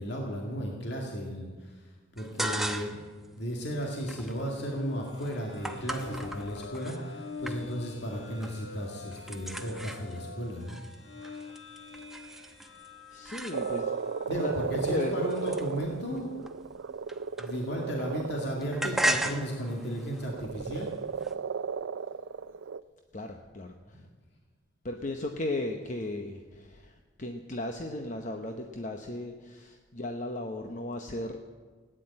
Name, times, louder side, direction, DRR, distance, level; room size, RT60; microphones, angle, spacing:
voice 1, 0.0-1.7 2.2-3.0 3.4-10.8 14.3-16.3 17.4-20.9 23.9-24.0, equal, 60° left, -1 dB, 2.3 m, -34 dB
sound 1, 2.2-3.1 3.5-7.0 7.4-8.0 8.2-8.7 8.9-14.0 14.6-17.9 18.2-21.3, right 1 dB, ahead, 0.9 m, -37 dB
sound 2, 4.2-14.4, left 3 dB, 75° left, 1.3 m, -45 dB
voice 2, 13.1-13.9 14.2-15.2 23.1-24.1 24.8-31.4, left 1 dB, 40° left, 4 dB, 0.9 m, -36 dB
Frog, 13.5-19.4 20.3-22.8, right 6 dB, 85° right, 0.4 m, -35 dB
16.5 x 10.0 x 8.7 m, 1.4 s
head